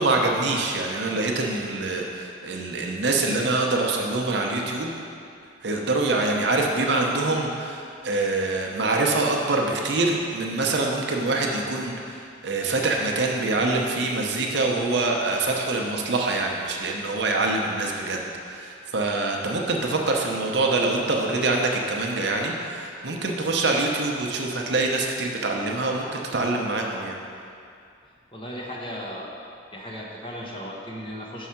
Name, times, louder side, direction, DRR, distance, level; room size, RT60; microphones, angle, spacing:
voice 1, 0.0-4.9 5.6-27.2, right 2 dB, 60° right, 0 dB, 0.8 m, -25 dB
voice 2, 28.3-29.3 29.7-31.5, equal, 25° left, -3 dB, 1.0 m, -36 dB
6.3 x 4.8 x 5.8 m, 2.5 s
head